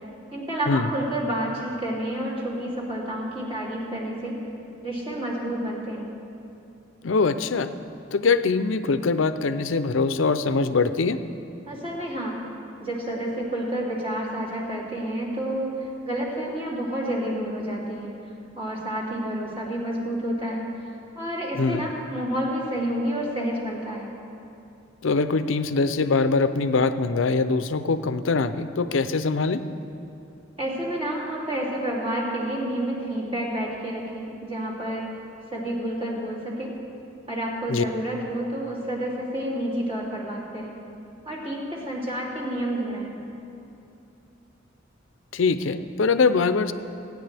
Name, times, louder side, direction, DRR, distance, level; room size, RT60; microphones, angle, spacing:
voice 1, 0.3-4.4 4.8-6.1 11.7-12.4 12.8-18.1 18.5-20.8 21.1-24.1 30.6-35.1 35.5-36.7 37.3-40.8 41.2-43.2, right 1 dB, 30° right, -5 dB, 3.0 m, -29 dB
voice 2, 7.0-7.7 8.1-11.2 21.6-21.9 25.0-29.6 37.7-37.8 45.3-46.7, left 4 dB, 75° left, 11 dB, 0.6 m, -23 dB
27.5 x 9.7 x 3.4 m, 2.7 s
head